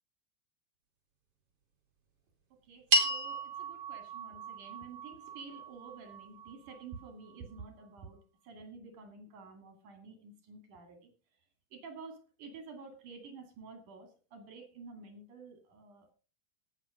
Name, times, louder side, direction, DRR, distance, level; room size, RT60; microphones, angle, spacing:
voice 1, 2.7-8.2 8.4-11.1 11.7-16.1, right 4 dB, 80° right, 5 dB, 4.0 m, -50 dB
sound 1, 2.9-7.4, right 1 dB, 50° right, 3.9 m, -34 dB
17.5 x 6.3 x 5.0 m, 0.36 s
omnidirectional pair, 3.6 m